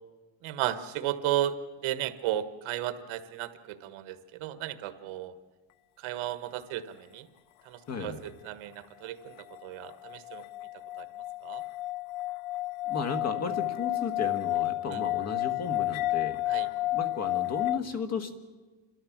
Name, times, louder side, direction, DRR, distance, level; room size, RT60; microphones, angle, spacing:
voice 1, 0.4-1.6 1.8-5.3 6.0-7.3 7.6-10.4 11.0-11.1 11.4-11.6 14.9-15.0 16.5-16.7, right 12 dB, 75° right, 11 dB, 1.4 m, -34 dB
voice 2, 7.9-8.2 12.9-16.4 16.9-18.3, left 4 dB, 30° left, 8 dB, 1.5 m, -34 dB
sound 1, 9.4-17.8, left 17 dB, 70° left, 0.7 m, -31 dB
29.5 x 13.0 x 7.3 m, 1.3 s
cardioid pair, 150°, 49 cm